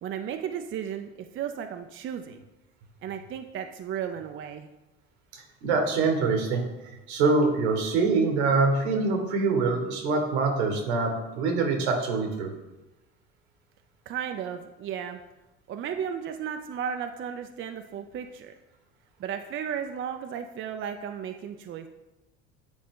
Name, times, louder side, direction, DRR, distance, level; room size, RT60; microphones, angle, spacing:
voice 1, 0.0-2.4 3.0-4.7 14.1-15.2 15.7-18.5 19.2-21.9, right 8 dB, 40° right, 6 dB, 0.5 m, -34 dB
voice 2, 5.3-6.6 7.1-12.5, right 4 dB, 80° right, 3 dB, 1.6 m, -24 dB
8.7 x 4.1 x 3.8 m, 1.0 s
hypercardioid pair, 80°, 32 cm